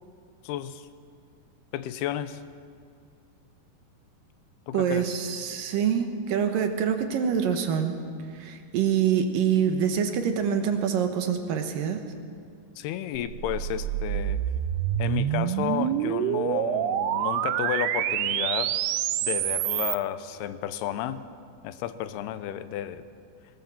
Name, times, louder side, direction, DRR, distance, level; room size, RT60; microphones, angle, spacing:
voice 1, 0.4-0.9 1.7-2.4 4.7-5.1 12.8-14.4 15.0-18.7 19.2-21.2 21.6-23.0, left 11 dB, 85° left, 12 dB, 2.8 m, -32 dB
voice 2, 4.7-7.9 8.3-12.0, right 8 dB, 70° right, 6 dB, 2.6 m, -25 dB
sound 1, 13.2-20.0, right 11 dB, 90° right, 2.8 m, -27 dB
19.0 x 19.0 x 7.3 m, 2.2 s
omnidirectional pair, 4.5 m